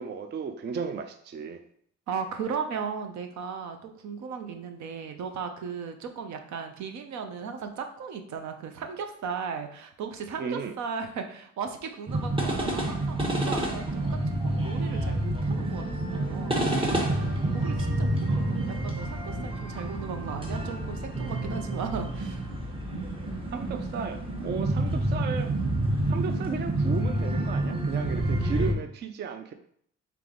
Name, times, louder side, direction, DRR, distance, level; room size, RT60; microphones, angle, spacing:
voice 1, 0.0-1.6 10.4-10.7 23.5-25.5 26.1-29.5, right 5 dB, 35° right, 8 dB, 0.4 m, -34 dB
voice 2, 2.1-22.6 22.9-23.1, right 6 dB, 70° right, 6 dB, 0.7 m, -36 dB
sound 1, 12.1-28.7, right 1 dB, 20° right, 0.9 m, -28 dB
3.4 x 3.3 x 3.8 m, 0.65 s
cardioid pair, 90°, 30 cm